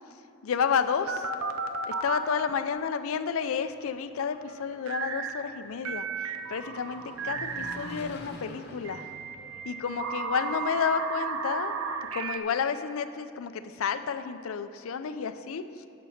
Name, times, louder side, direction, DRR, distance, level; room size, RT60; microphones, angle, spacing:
voice 1, 0.4-1.3 1.9-9.1 9.7-11.8 12.1-15.6, left 6 dB, 75° left, 11 dB, 0.4 m, -31 dB
sound 1, 1.1-2.3 4.9-5.3 5.8-8.0 8.8-12.4, right 5 dB, 70° right, 0.5 m, -34 dB
Engine, 3.4-12.2, left 1 dB, 50° left, 0.9 m, -49 dB
6.9 x 6.1 x 7.1 m, 2.5 s
head